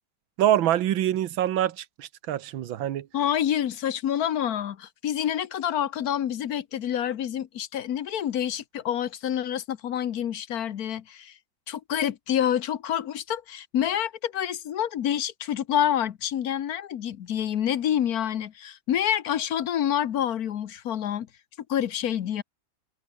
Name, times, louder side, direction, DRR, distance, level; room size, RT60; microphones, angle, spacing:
voice 1, 0.4-3.1, right 12 dB, 85° right, 1.8 m, -25 dB
voice 2, 3.1-11.3 11.7-21.3 21.7-22.4, left 10 dB, 55° left, 1.3 m, -27 dB
omnidirectional pair, 2.1 m